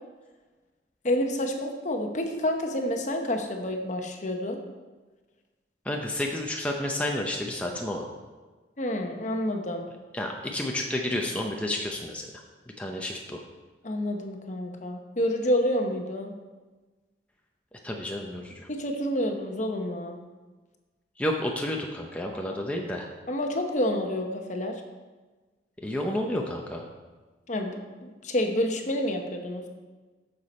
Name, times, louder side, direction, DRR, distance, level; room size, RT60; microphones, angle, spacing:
voice 1, 1.0-4.6 8.8-9.8 13.8-16.3 18.7-20.2 23.3-24.8 27.5-29.6, left 1 dB, 40° left, 4 dB, 0.9 m, -28 dB
voice 2, 5.9-8.1 10.1-12.3 12.8-13.4 17.8-18.7 21.2-23.1 25.8-26.8, left 1 dB, 5° left, 0 dB, 0.6 m, -30 dB
9.2 x 6.7 x 4.3 m, 1.3 s
head